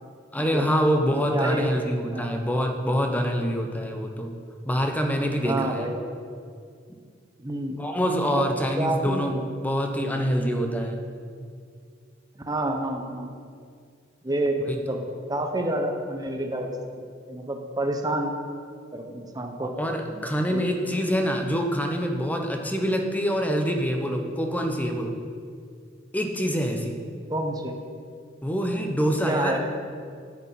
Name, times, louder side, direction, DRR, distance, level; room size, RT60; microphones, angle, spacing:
voice 1, 0.3-4.3 4.6-5.9 7.8-11.0 14.7-14.8 19.8-25.1 26.1-27.0 28.4-29.6, equal, 10° left, 3 dB, 0.9 m, -25 dB
voice 2, 1.3-1.7 2.1-2.3 5.4-6.0 7.4-7.8 8.3-8.5 8.8-9.3 12.3-13.3 14.2-14.6 14.9-15.0 15.3-16.7 17.3-18.3 18.9-19.7 20.5-20.6 27.3-27.7 29.2-29.6, right 1 dB, 20° right, 3 dB, 1.0 m, -28 dB
9.7 x 8.3 x 5.7 m, 2.2 s
head